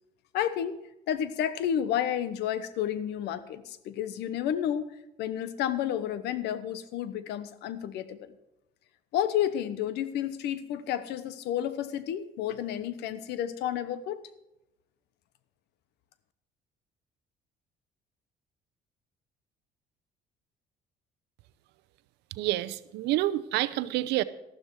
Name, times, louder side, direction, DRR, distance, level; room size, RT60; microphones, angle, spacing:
voice 1, 0.3-0.8 1.1-8.3 9.1-14.2, left 10 dB, 80° left, 14 dB, 1.0 m, -31 dB
voice 2, 22.3-24.2, right 15 dB, 85° right, 15 dB, 0.7 m, -28 dB
13.0 x 12.0 x 4.7 m, 0.89 s
cardioid pair, 110°, 17 cm